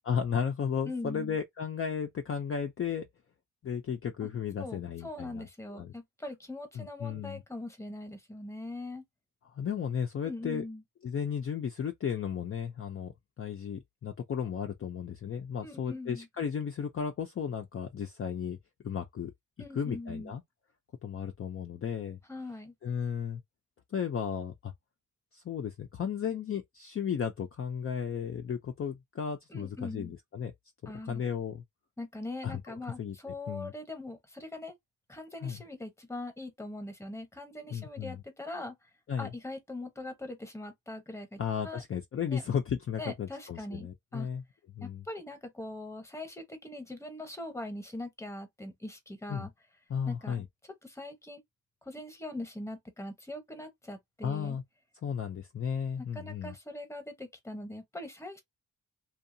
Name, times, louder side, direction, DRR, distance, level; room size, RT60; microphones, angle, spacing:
voice 1, 0.1-3.1 3.6-5.9 6.8-7.4 9.5-10.6 11.0-18.6 18.8-19.3 19.7-20.4 21.0-22.2 22.8-23.4 23.9-24.7 25.3-30.5 30.8-31.6 32.4-33.7 35.4-35.6 37.7-38.2 39.1-39.3 41.4-44.4 44.7-45.0 49.3-49.5 49.9-50.5 54.2-54.6 55.0-56.5, left 7 dB, 40° left, 0.5 m, -34 dB
voice 2, 0.9-1.4 4.6-9.0 10.2-10.8 15.6-16.3 19.6-20.4 22.3-22.7 29.5-30.1 30.9-31.2 32.0-34.7 35.1-38.8 39.2-41.8 42.3-42.4 43.0-44.3 44.8-49.5 50.1-50.4 50.8-51.4 51.8-54.6 56.0-58.4, left 2 dB, 10° left, 0.9 m, -41 dB
2.7 x 2.3 x 2.6 m
cardioid pair, 105°, 36 cm